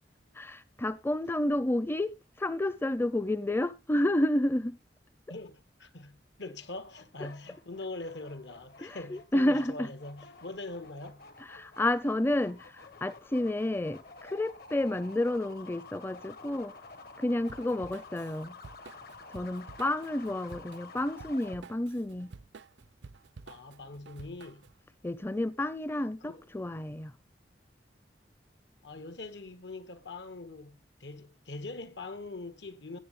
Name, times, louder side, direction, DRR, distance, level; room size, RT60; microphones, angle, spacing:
voice 1, 0.3-4.8 7.2-7.3 8.8-9.9 11.5-16.7 17.2-18.6 19.3-22.3 25.0-27.1, left 1 dB, 15° left, 0.5 m, -30 dB
voice 2, 5.3-11.2 23.5-24.7 26.2-26.5 28.8-33.0, left 2 dB, 80° left, 1.7 m, -43 dB
sound 1, 6.6-21.6, left 3 dB, 60° left, 1.2 m, -51 dB
Drum kit / Drum, 17.5-24.8, right 4 dB, 90° right, 0.5 m, -51 dB
17.0 x 7.9 x 3.3 m
head